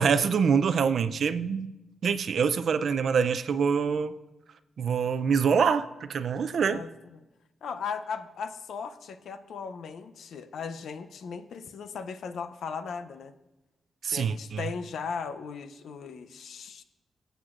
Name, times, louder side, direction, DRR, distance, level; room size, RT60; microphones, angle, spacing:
voice 1, 0.0-1.7 2.0-4.1 4.8-6.8 14.0-14.6, right 6 dB, 60° right, 13 dB, 0.4 m, -25 dB
voice 2, 6.7-7.2 7.6-13.3 14.1-16.8, left 6 dB, 75° left, 10 dB, 0.5 m, -37 dB
23.0 x 8.0 x 2.5 m, 1.0 s
wide cardioid pair, 135°, 0 cm